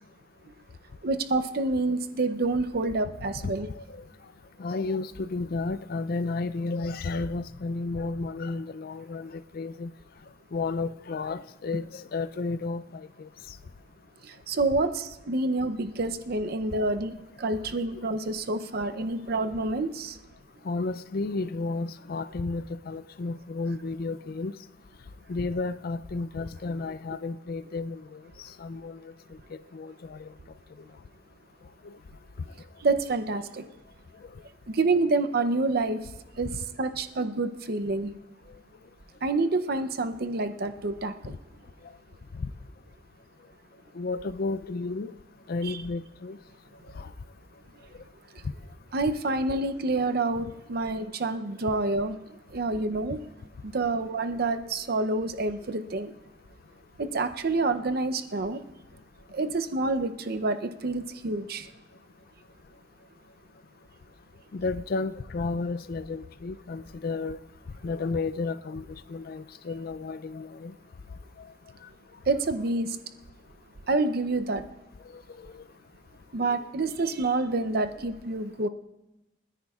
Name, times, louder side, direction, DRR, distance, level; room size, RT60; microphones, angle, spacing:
voice 1, 1.0-3.7 14.2-20.2 32.8-33.7 34.7-36.0 36.4-36.5 36.8-38.1 39.2-41.4 45.6-45.8 48.9-53.2 53.6-56.1 57.0-58.6 59.3-61.7 72.3-73.0 73.9-74.6 76.3-78.7, right 3 dB, 60° right, 9 dB, 0.7 m, -28 dB
voice 2, 3.4-4.0 4.6-9.9 10.5-13.3 17.9-18.0 20.6-24.5 25.3-28.2 28.6-29.1 29.5-30.3 31.8-31.9 36.5-36.6 42.4-42.5 43.9-45.1 45.5-46.4 47.0-47.1 59.4-59.5 64.5-67.4 67.8-68.8 69.1-70.7 71.4-71.5 75.5-75.6 76.5-76.6, left 3 dB, 55° left, 14 dB, 0.4 m, -32 dB
29.0 x 10.0 x 2.4 m, 0.99 s
head